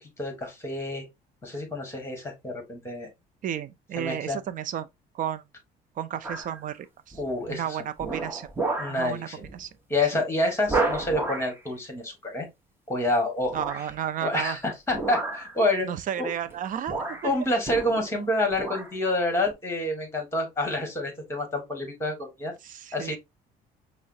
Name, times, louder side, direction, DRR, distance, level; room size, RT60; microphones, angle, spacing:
voice 1, 0.2-1.0 1.4-3.1 4.0-4.4 7.2-7.6 8.8-9.4 9.9-12.5 12.9-13.6 14.2-15.9 16.2-16.3 17.2-22.5 22.9-23.2, left 1 dB, 15° left, 1.5 m, -28 dB
voice 2, 3.4-4.9 5.1-5.4 6.0-7.2 7.5-8.5 8.9-9.7 10.1-10.2 13.5-14.6 15.8-17.3 22.6-23.2, right 10 dB, 50° right, 0.4 m, -33 dB
sound 1, 6.2-6.6 7.1-7.5 8.0-9.0 9.4-9.6 10.0-10.1 10.7-11.6 13.5-14.0 14.9-15.6 16.4-16.6 16.9-18.2 18.5-18.9 19.4-19.5, right 3 dB, 15° right, 0.8 m, -31 dB
5.5 x 2.1 x 2.6 m
cardioid pair, 110°, 17 cm